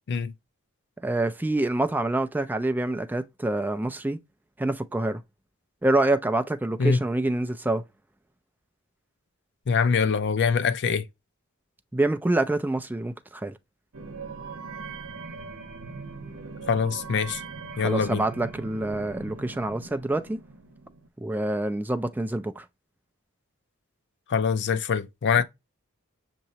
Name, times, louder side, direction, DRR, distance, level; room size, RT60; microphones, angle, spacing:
voice 1, 1.0-4.2 4.6-5.2 5.8-7.8 11.9-13.6 17.8-20.4 21.2-22.6, right 2 dB, 10° right, 0.4 m, -26 dB
voice 2, 9.7-11.1 16.7-17.4 17.8-18.2 24.3-25.4, left 6 dB, 55° left, 0.5 m, -24 dB
sound 1, 13.9-21.1, right 4 dB, 85° right, 0.8 m, -40 dB
6.5 x 2.9 x 2.8 m
head